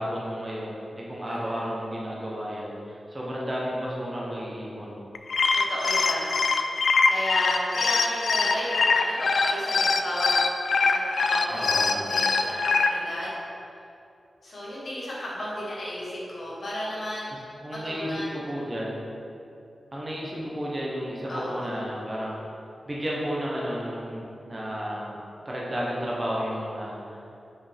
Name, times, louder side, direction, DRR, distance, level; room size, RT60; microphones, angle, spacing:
voice 1, 0.0-5.0 11.5-12.2 17.6-19.0 19.9-22.4 22.9-25.2 25.4-27.0, equal, 20° right, -5 dB, 1.0 m, -32 dB
voice 2, 1.3-1.6 5.5-6.3 7.1-10.3 10.8-13.3 14.4-18.4 21.3-21.7, left 1 dB, 50° left, -6 dB, 1.4 m, -33 dB
sound 1, 5.1-12.9, left 4 dB, 75° left, 0.3 m, -23 dB
6.3 x 4.6 x 3.5 m, 2.6 s
wide cardioid pair, 150°, 0 cm